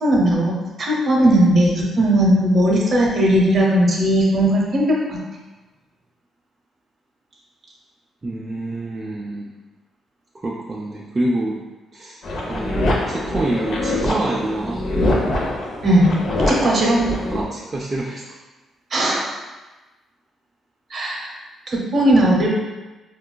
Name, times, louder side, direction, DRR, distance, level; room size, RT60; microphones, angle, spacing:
voice 1, 0.0-5.2 15.8-16.1 16.5-17.1 18.9-19.3 20.9-21.3 21.7-22.5, right 1 dB, 45° right, -2 dB, 0.8 m, -17 dB
voice 2, 8.2-9.5 10.3-11.6 11.9-12.2 12.5-14.9 16.6-16.8 17.3-18.4, right 1 dB, 30° right, -3 dB, 0.3 m, -26 dB
sound 1, 12.2-17.4, left 1 dB, 60° left, 0.6 m, -23 dB
4.2 x 2.3 x 2.2 m, 1.2 s
cardioid pair, 90°, 0 cm